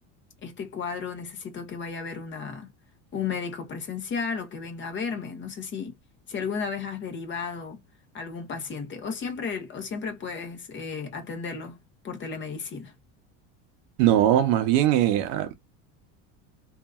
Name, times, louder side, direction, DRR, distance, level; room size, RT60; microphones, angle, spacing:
voice 1, 0.4-2.7 3.1-5.9 6.3-7.8 8.1-12.9, left 5 dB, 30° left, 1.0 m, -34 dB
voice 2, 14.0-15.5, right 12 dB, 65° right, 0.8 m, -21 dB
2.8 x 2.5 x 2.3 m
supercardioid pair, 130°, 37 cm